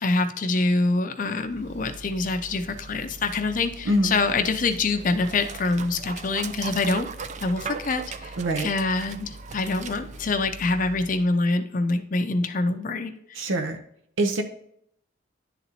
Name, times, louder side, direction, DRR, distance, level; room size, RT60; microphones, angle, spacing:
voice 1, 0.0-7.1 7.4-13.1, left 3 dB, 40° left, 7 dB, 0.5 m, -25 dB
Dog, 1.4-11.3, right 4 dB, 35° right, 0.3 m, -39 dB
voice 2, 3.9-4.2 8.4-8.7 13.3-13.8 14.2-14.4, right 1 dB, 80° right, 5 dB, 0.7 m, -24 dB
10.5 x 4.0 x 2.9 m, 0.68 s
head